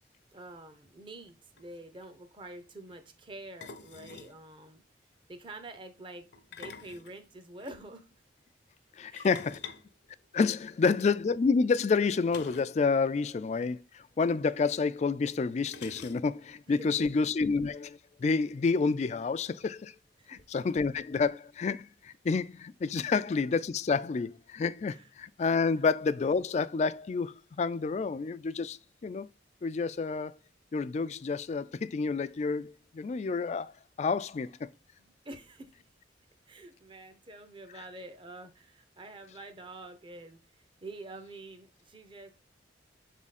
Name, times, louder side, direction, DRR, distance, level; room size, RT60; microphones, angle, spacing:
voice 1, 0.3-4.8 5.3-8.1 9.1-9.3 13.2-13.3 16.8-17.1 20.2-20.4 23.0-23.1 24.9-25.1 35.0-35.9 36.5-40.4 40.8-42.3, right 2 dB, 30° right, 0.7 m, -47 dB
sound 1, 1.3-1.4 1.6-1.8 3.6-4.4 6.3-7.7 9.2-10.8 12.3-12.8 13.1-13.2 13.5-13.6 14.7-14.8 15.7-16.5, left 5 dB, 70° left, 0.7 m, -47 dB
voice 2, 9.0-9.6 10.3-19.9 20.3-29.3 29.6-30.3 30.7-33.7 34.0-34.7 37.7-37.8, left 4 dB, 40° left, 0.3 m, -29 dB
7.0 x 3.6 x 4.1 m
head